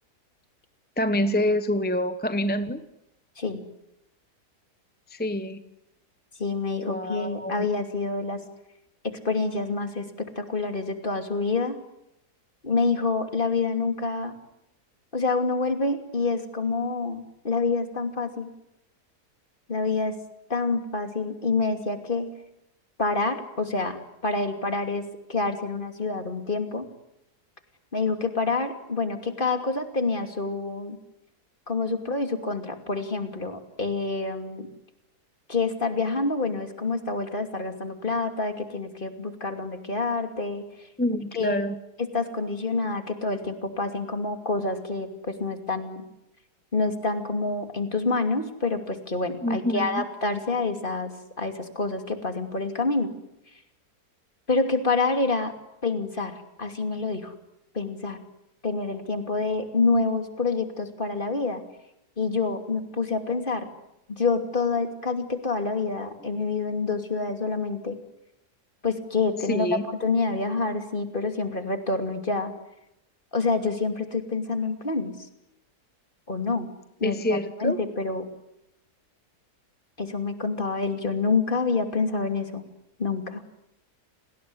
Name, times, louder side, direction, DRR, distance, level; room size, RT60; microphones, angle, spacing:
voice 1, 1.0-2.8 5.1-5.6 6.8-7.7 41.0-41.8 49.4-50.0 69.5-69.8 77.0-77.8, left 1 dB, 5° left, 10 dB, 0.9 m, -26 dB
voice 2, 6.4-8.4 9.0-11.8 12.6-14.4 15.1-18.5 19.7-20.1 20.5-22.3 23.0-26.9 27.9-31.0 31.7-34.7 35.5-40.6 41.4-41.6 42.0-46.1 46.7-53.1 54.5-55.5 55.8-57.3 57.7-58.2 58.6-61.6 62.2-63.7 64.1-68.0 68.8-69.7 70.0-72.5 73.3-75.2 76.3-76.7 77.0-78.3 80.0-82.6 83.0-83.4, left 3 dB, 30° left, 6 dB, 2.9 m, -27 dB
29.5 x 20.0 x 9.8 m, 0.85 s
omnidirectional pair, 1.7 m